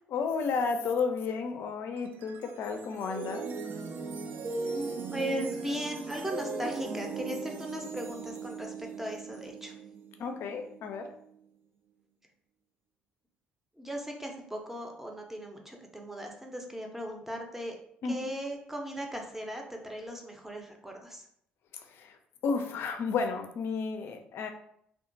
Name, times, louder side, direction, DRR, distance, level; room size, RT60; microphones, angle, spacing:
voice 1, 0.1-3.4 10.2-11.1 18.0-18.3 21.9-22.2 22.4-24.5, left 5 dB, 55° left, 6 dB, 0.4 m, -32 dB
sound 1, 2.0-11.2, right 4 dB, 50° right, 0.4 m, -38 dB
voice 2, 5.1-9.7 13.8-17.8 18.0-21.2, equal, 5° right, 2 dB, 0.6 m, -38 dB
2.8 x 2.2 x 2.6 m, 0.70 s
hypercardioid pair, 50°, 5 cm